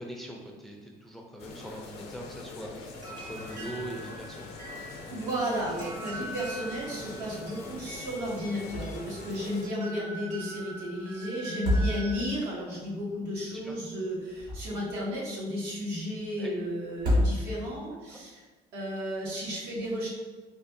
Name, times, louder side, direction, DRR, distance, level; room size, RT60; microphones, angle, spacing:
voice 1, 0.0-4.6 13.4-13.7 16.4-16.5 18.1-18.2, right 1 dB, ahead, 0 dB, 0.4 m, -42 dB
sound 1, 1.4-9.7, left 3 dB, 80° left, 0.6 m, -44 dB
sound 2, 2.9-12.2, right 1 dB, 50° right, 1.2 m, -44 dB
voice 2, 5.1-18.4 18.7-20.1, equal, 85° right, -6 dB, 1.3 m, -33 dB
sound 3, 8.7-9.2 9.5-9.6 11.4-12.4 14.1-15.0 16.9-17.8, left 1 dB, 70° right, 1.5 m, -28 dB
4.4 x 2.4 x 2.6 m, 1.3 s
cardioid pair, 110°, 17 cm